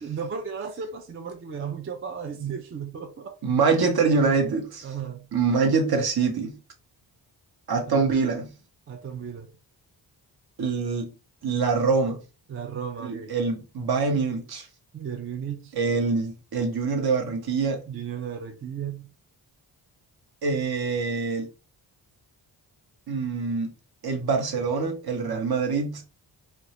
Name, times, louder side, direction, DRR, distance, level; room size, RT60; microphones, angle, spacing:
voice 1, 0.0-3.3 4.8-5.3 7.9-8.0 8.9-9.5 12.5-13.4 14.9-15.7 17.9-19.1 25.2-25.5, right 7 dB, 30° right, 0.4 m, -35 dB
voice 2, 3.4-4.9 5.3-6.6 7.7-8.5 10.6-11.1 11.4-12.2 13.0-14.7 15.8-17.8 20.4-21.5 23.1-23.7 24.0-26.0, right 4 dB, 55° right, 0.8 m, -25 dB
2.2 x 2.0 x 2.8 m
cardioid pair, 60°, 46 cm